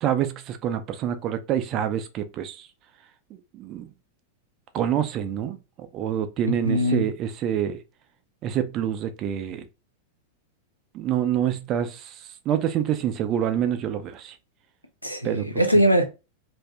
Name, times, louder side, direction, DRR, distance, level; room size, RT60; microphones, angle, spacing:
voice 1, 0.0-2.7 3.5-3.9 4.7-7.8 8.4-9.6 10.9-14.3 15.2-15.5, right 10 dB, 35° right, 0.5 m, -27 dB
voice 2, 6.6-7.1 15.0-16.0, equal, 90° left, 0.6 m, -21 dB
2.7 x 2.6 x 3.4 m
figure-of-eight pair, 90°, 0 cm